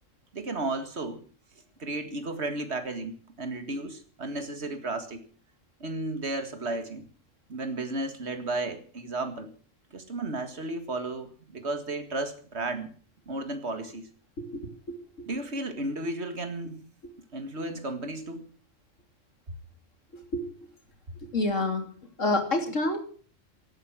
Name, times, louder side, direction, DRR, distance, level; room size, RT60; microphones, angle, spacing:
voice 1, 0.3-1.2 1.8-5.2 5.8-7.1 7.5-9.5 9.9-12.9 13.3-14.1 15.3-16.8 17.3-18.5, right 2 dB, 55° right, 8 dB, 2.2 m, -33 dB
voice 2, 14.9-15.3 20.1-20.5 21.2-21.9 22.2-23.0, left 2 dB, 75° left, 6 dB, 3.2 m, -28 dB
17.0 x 12.5 x 6.2 m, 0.43 s
omnidirectional pair, 1.3 m